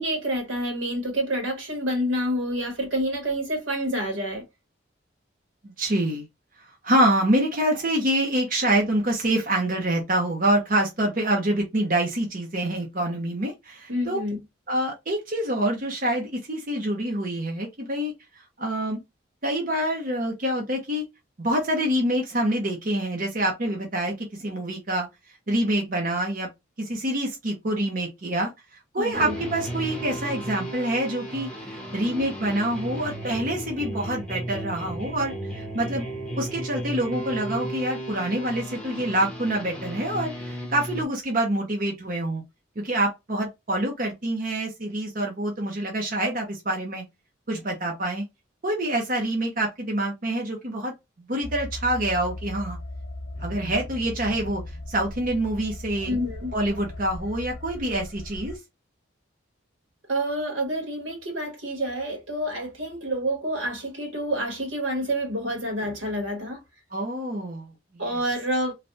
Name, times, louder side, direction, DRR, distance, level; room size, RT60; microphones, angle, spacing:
voice 1, 0.0-4.4 13.9-14.4 29.0-29.3 56.1-56.5 60.1-66.6 68.0-68.7, equal, 85° right, 1.7 m, -28 dB
voice 2, 5.6-6.2 6.8-14.2 14.7-19.0 19.4-21.0 21.4-25.1 25.5-26.5 26.8-36.0 36.4-42.4 42.8-47.0 47.5-48.3 48.6-50.9 51.3-52.8 53.4-56.1 56.5-58.6 66.9-68.0, right 1 dB, 45° right, 0.8 m, -26 dB
sound 1, 29.1-41.1, right 1 dB, 5° left, 0.8 m, -34 dB
sound 2, 51.4-58.6, left 1 dB, 85° left, 0.8 m, -37 dB
3.2 x 2.5 x 2.6 m
head